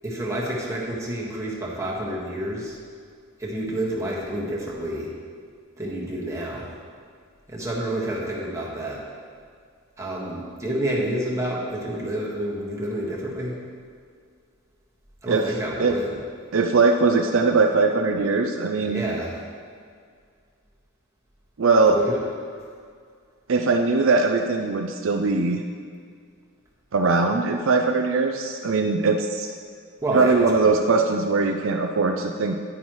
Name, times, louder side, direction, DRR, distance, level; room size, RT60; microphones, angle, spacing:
voice 1, 0.0-2.8 3.4-5.1 5.8-6.7 7.5-9.0 10.0-13.5 15.2-16.2 18.8-19.3 21.9-22.2 30.0-30.5, right 1 dB, 15° right, -5 dB, 1.6 m, -29 dB
voice 2, 16.5-19.0 21.6-22.0 23.5-25.6 26.9-29.5 30.1-32.5, right 3 dB, 65° right, 3 dB, 0.5 m, -21 dB
10.0 x 9.5 x 3.1 m, 2.1 s
head